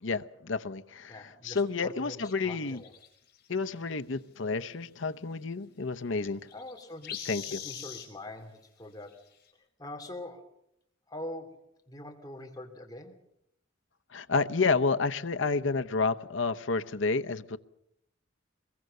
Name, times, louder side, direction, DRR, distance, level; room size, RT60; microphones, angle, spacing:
voice 1, 0.0-1.2 1.4-2.8 3.5-6.4 7.3-7.6 14.1-17.6, left 4 dB, 80° left, 0.9 m, -30 dB
voice 2, 1.1-2.9 6.5-9.3 9.5-10.5 11.1-13.2, left 1 dB, 20° left, 3.0 m, -44 dB
sound 1, 2.7-3.7 6.2-6.3 6.5-8.1 9.1-9.2 9.5-9.6, left 9 dB, 50° left, 4.8 m, -41 dB
23.0 x 22.0 x 6.7 m
head